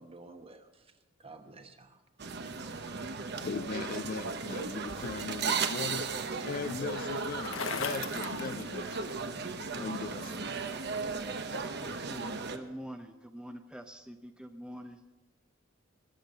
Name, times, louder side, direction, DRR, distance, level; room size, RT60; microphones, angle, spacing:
voice 1, 0.0-2.0, right 3 dB, 30° right, 6 dB, 1.2 m, -52 dB
sound 1, 2.2-12.6, right 4 dB, 55° right, 1.0 m, -36 dB
voice 2, 3.4-8.9 9.8-10.5, left 5 dB, 45° left, 15 dB, 0.3 m, -39 dB
sound 2, 4.9-7.7, right 1 dB, 75° right, 4.6 m, -56 dB
Bicycle, 5.0-9.4, left 6 dB, 80° left, 1.0 m, -41 dB
voice 3, 11.7-15.0, equal, 5° right, 6 dB, 0.6 m, -45 dB
20.5 x 7.2 x 6.5 m, 1.2 s
head